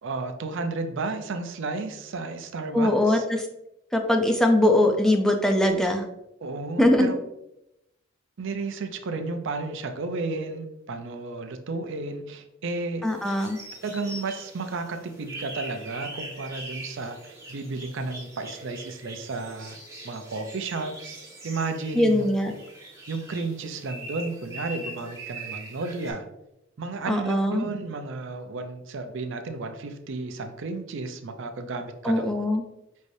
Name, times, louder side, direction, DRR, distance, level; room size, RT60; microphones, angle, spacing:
voice 1, 0.0-3.2 6.4-7.2 8.4-13.1 13.8-19.8 20.0-21.2 21.4-22.6 23.1-26.3 26.8-32.3, right 3 dB, 65° right, 7 dB, 0.5 m, -33 dB
voice 2, 2.7-3.4 3.9-6.0 6.8-7.1 13.0-13.6 22.0-22.5 27.1-27.7 32.0-32.6, left 1 dB, ahead, 3 dB, 0.3 m, -21 dB
sound 1, 13.1-26.1, right 2 dB, 15° right, 1.2 m, -42 dB
5.4 x 3.2 x 2.6 m, 0.87 s
head